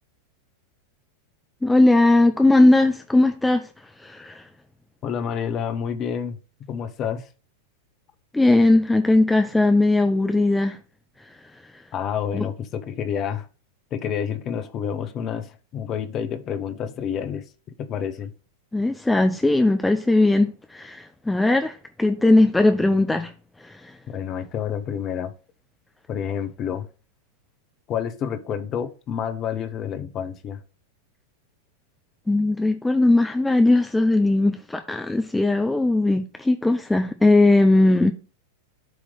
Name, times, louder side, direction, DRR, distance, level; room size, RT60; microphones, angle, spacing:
voice 1, 1.6-3.7 4.0-4.4 8.3-10.8 12.3-12.5 18.7-23.3 23.6-23.9 32.3-38.1, left 2 dB, 5° left, 0.6 m, -19 dB
voice 2, 5.0-6.4 6.7-7.3 11.9-13.5 13.9-17.4 17.8-18.3 24.1-25.3 26.1-26.9 27.9-30.6, left 8 dB, 35° left, 0.9 m, -29 dB
7.8 x 3.2 x 5.2 m
figure-of-eight pair, 90°, 0 cm